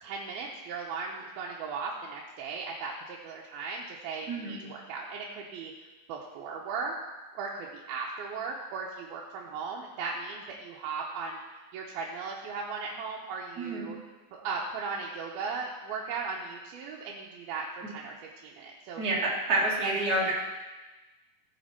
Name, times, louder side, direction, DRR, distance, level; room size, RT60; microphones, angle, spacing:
voice 1, 0.0-5.7 6.1-6.9 7.4-11.4 11.7-14.0 14.3-18.1 18.4-19.0 19.8-20.3, right 4 dB, 90° right, -3 dB, 2.9 m, -37 dB
voice 2, 4.3-4.6 13.6-13.9 19.0-20.3, right 2 dB, 30° right, -4 dB, 2.2 m, -28 dB
15.5 x 7.2 x 4.4 m, 1.2 s
omnidirectional pair, 4.2 m